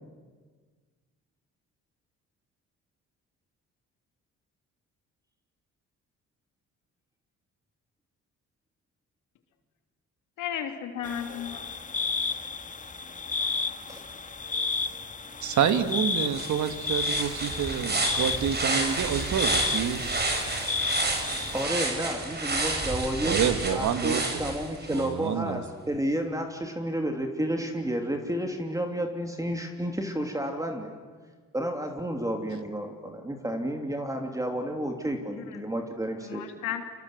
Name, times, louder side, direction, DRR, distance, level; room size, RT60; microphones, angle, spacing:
voice 1, 10.4-11.7 35.3-35.6 36.2-36.8, left 9 dB, 85° left, 5 dB, 3.1 m, -34 dB
sound 1, 11.0-21.6, left 4 dB, 25° left, 1.7 m, -32 dB
voice 2, 15.4-20.0 23.2-24.2 24.9-25.6, right 8 dB, 70° right, 9 dB, 1.9 m, -27 dB
sound 2, 15.9-16.0 16.3-25.1, right 2 dB, 35° right, 5.9 m, -30 dB
voice 3, 21.5-23.4 23.7-30.9 31.5-36.4, right 1 dB, 10° right, 3 dB, 3.0 m, -31 dB
28.5 x 26.0 x 8.0 m, 1.5 s
cardioid pair, 90°, 30 cm